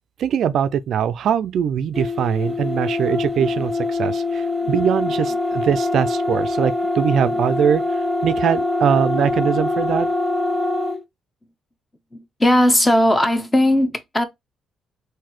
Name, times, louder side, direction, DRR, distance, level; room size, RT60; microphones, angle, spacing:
voice 1, 0.2-7.8 8.2-10.1, right 8 dB, 70° right, 0.3 m, -21 dB
sound 1, 1.9-11.0, left 2 dB, ahead, 1.2 m, -23 dB
voice 2, 12.1-14.2, left 1 dB, 15° left, 0.7 m, -17 dB
3.9 x 2.7 x 3.0 m
cardioid pair, 90°, 0 cm